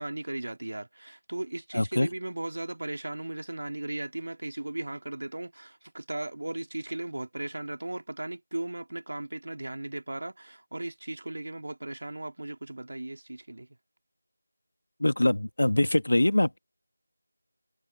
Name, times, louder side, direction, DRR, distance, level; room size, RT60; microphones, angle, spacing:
voice 1, 0.0-13.7, right 2 dB, 60° right, 2.7 m, -37 dB
voice 2, 1.7-2.1 15.0-16.6, left 1 dB, 65° left, 1.7 m, -23 dB
figure-of-eight pair, 170°, 0 cm